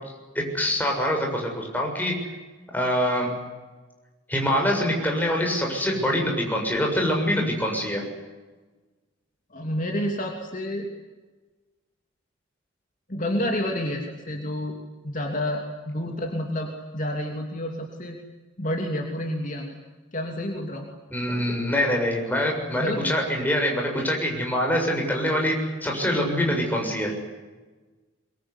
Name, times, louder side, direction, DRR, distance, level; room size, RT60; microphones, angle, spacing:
voice 1, 0.5-2.1 2.7-3.3 4.3-8.0 21.1-25.5 25.8-27.1, equal, 10° left, 0 dB, 7.2 m, -24 dB
voice 2, 9.5-10.9 13.1-14.7 15.0-18.2 18.6-19.8 20.1-20.9 22.8-23.2, left 1 dB, 40° left, 2 dB, 3.1 m, -29 dB
24.0 x 23.0 x 9.9 m, 1.3 s
head